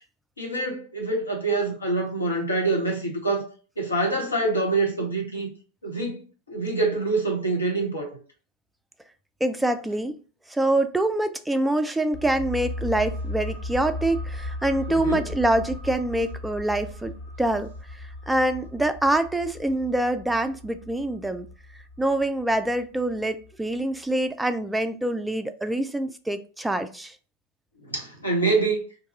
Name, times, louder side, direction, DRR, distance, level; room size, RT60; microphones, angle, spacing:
voice 1, 0.4-3.5 3.8-5.5 5.8-6.2 6.5-8.1 14.9-15.2 27.8-28.8, right 2 dB, 80° left, 1.0 m, -25 dB
voice 2, 9.4-10.2 10.5-21.5 22.0-27.1, right 1 dB, 5° right, 0.3 m, -25 dB
sound 1, 12.1-23.5 23.8-23.9, left 1 dB, 40° left, 0.6 m, -37 dB
2.6 x 2.3 x 4.0 m
figure-of-eight pair, 90°, 0 cm